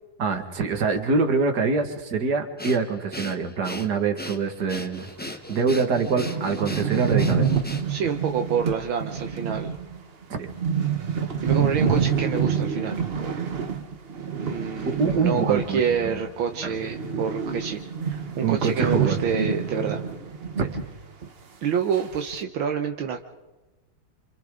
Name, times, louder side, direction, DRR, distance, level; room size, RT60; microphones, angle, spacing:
voice 1, 0.2-7.5 10.3-10.5 14.9-16.2 16.6-16.7 18.4-19.2 20.6-20.7, right 4 dB, 55° right, 6 dB, 2.4 m, -25 dB
Breathing, 2.6-8.1, left 1 dB, 5° left, 0.8 m, -37 dB
sound 1, 5.3-5.4 5.7-5.8 6.0-16.2 16.4-20.9 21.2-21.3 21.9-22.4, right 6 dB, 35° right, 1.1 m, -27 dB
voice 2, 7.9-9.7 11.4-13.5 14.4-20.0 21.6-23.2, right 6 dB, 75° right, 4 dB, 1.9 m, -27 dB
29.0 x 27.0 x 3.9 m, 1.1 s
omnidirectional pair, 2.2 m